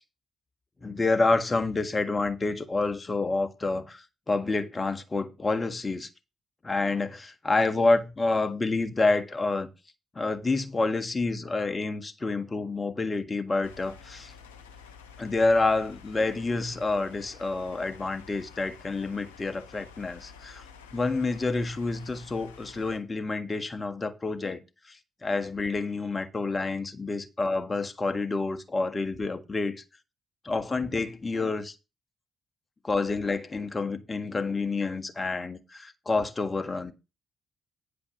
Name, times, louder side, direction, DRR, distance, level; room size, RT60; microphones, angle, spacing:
voice 1, 0.8-6.1 6.6-9.7 10.1-14.3 15.2-20.6 20.9-24.6 24.9-29.8 30.4-31.7 32.8-36.9, left 3 dB, 30° left, 1.5 m, -28 dB
sound 1, 13.6-23.0, left 6 dB, 85° left, 1.0 m, -50 dB
10.0 x 5.2 x 5.7 m
hypercardioid pair, 40°, 0 cm